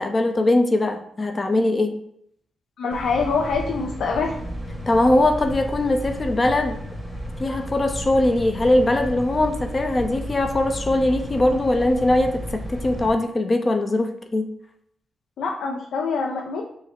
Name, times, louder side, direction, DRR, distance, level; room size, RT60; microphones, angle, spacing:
voice 1, 0.0-1.9 4.9-6.8 7.4-14.5, left 1 dB, 30° left, 5 dB, 0.6 m, -21 dB
voice 2, 2.8-4.3 15.4-16.6, left 4 dB, 80° left, 0 dB, 0.5 m, -25 dB
sound 1, 2.9-13.1, equal, 5° left, 1.2 m, -33 dB
5.2 x 2.0 x 4.3 m, 0.70 s
cardioid pair, 75°, 0 cm